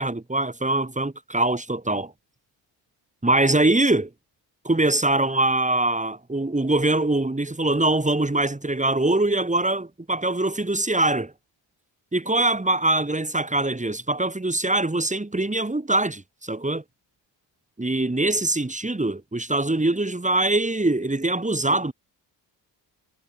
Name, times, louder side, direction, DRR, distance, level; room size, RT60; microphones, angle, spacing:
voice 1, 0.0-2.1 3.2-4.1 4.6-11.3 12.1-16.8 17.8-21.9, right 2 dB, 15° right, 6.1 m, -23 dB
supercardioid pair, 60°, 46 cm